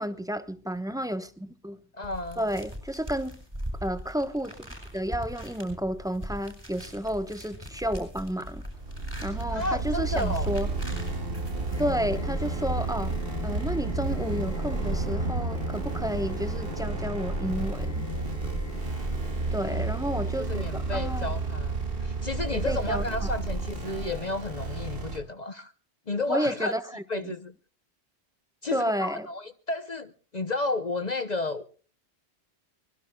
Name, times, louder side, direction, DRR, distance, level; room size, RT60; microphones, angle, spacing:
voice 1, 0.0-1.8 2.4-3.4 3.8-8.6 9.2-10.7 11.8-13.1 13.4-18.1 19.5-21.3 22.4-23.3 26.3-27.3 28.7-29.3, equal, 5° right, 1.0 m, -31 dB
voice 2, 1.9-2.4 9.5-10.5 19.6-19.8 20.4-25.7 26.1-26.8 27.1-27.5 28.6-31.6, left 2 dB, 40° left, 0.9 m, -32 dB
sound 1, 2.0-12.2, equal, 20° right, 8.0 m, -41 dB
sound 2, 8.6-25.2, right 3 dB, 55° right, 2.6 m, -31 dB
sound 3, 11.7-21.5, left 5 dB, 15° left, 4.4 m, -44 dB
24.0 x 21.5 x 2.3 m
omnidirectional pair, 1.1 m